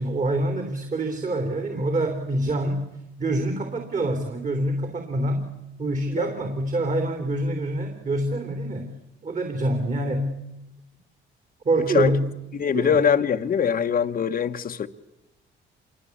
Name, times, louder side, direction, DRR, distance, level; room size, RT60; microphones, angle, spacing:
voice 1, 0.0-2.8 3.2-5.5 5.8-8.9 9.2-10.3 11.6-12.3 12.7-13.0, right 1 dB, 40° right, 3.4 m, -26 dB
voice 2, 12.6-14.9, left 7 dB, 45° left, 1.1 m, -22 dB
27.0 x 23.0 x 8.5 m
cardioid pair, 90°, 20 cm